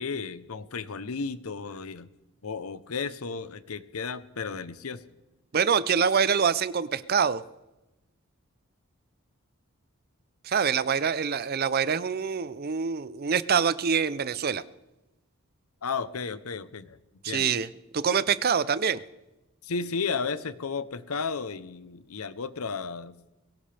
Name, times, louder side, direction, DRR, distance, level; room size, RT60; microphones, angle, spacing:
voice 1, 0.0-2.1 2.4-5.0 15.8-17.0 17.3-17.5 19.6-23.2, left 5 dB, 85° left, 14 dB, 0.8 m, -33 dB
voice 2, 5.5-7.4 10.4-14.6 17.2-19.0, right 6 dB, 45° right, 17 dB, 0.5 m, -25 dB
22.0 x 18.0 x 3.4 m, 1.0 s
head